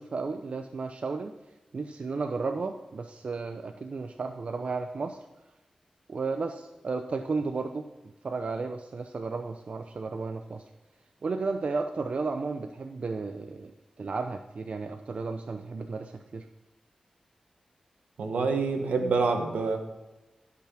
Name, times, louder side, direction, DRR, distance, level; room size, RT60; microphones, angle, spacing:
voice 1, 0.0-1.3 1.7-5.2 6.1-7.8 8.2-10.6 11.2-16.4, right 4 dB, 65° right, 6 dB, 0.7 m, -33 dB
voice 2, 18.2-19.8, right 4 dB, 90° right, 4 dB, 1.5 m, -26 dB
15.0 x 6.0 x 5.9 m, 1.0 s
cardioid pair, 45°, 2 cm